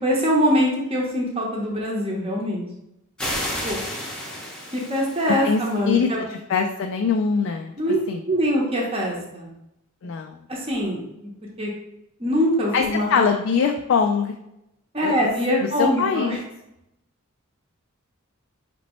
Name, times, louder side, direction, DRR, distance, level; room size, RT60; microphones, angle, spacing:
voice 1, 0.0-2.7 3.6-3.8 4.7-6.3 7.8-8.0 8.3-9.5 10.5-11.3 11.6-11.7 12.2-13.3 14.9-16.4, equal, 25° right, -2 dB, 0.8 m, -23 dB
sound 1, 3.2-5.8, equal, 5° left, 0.8 m, -31 dB
voice 2, 5.3-7.7 8.1-8.2 10.0-10.4 12.7-14.4 15.0-15.1 15.8-16.4, left 5 dB, 65° left, 3 dB, 0.3 m, -23 dB
5.1 x 2.9 x 3.0 m, 0.84 s
head